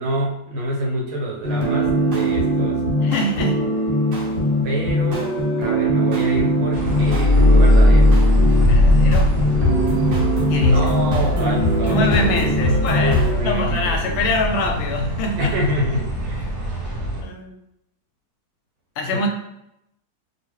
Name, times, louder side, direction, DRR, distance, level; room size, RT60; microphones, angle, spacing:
voice 1, 0.0-2.8 4.6-8.2 10.7-12.5 13.0-14.2 15.4-16.5 19.1-19.3, right 1 dB, 85° right, -1 dB, 1.7 m, -27 dB
sound 1, 1.4-13.4, equal, 65° right, 1.7 m, -20 dB
voice 2, 3.0-3.7 8.6-9.4 10.5-10.9 11.4-15.5 16.6-16.7 17.2-17.6 19.0-19.3, left 2 dB, 75° left, 3 dB, 1.3 m, -23 dB
sound 2, 6.7-17.2, left 1 dB, 50° right, 0.8 m, -20 dB
3.3 x 2.8 x 3.0 m, 0.82 s
omnidirectional pair, 2.2 m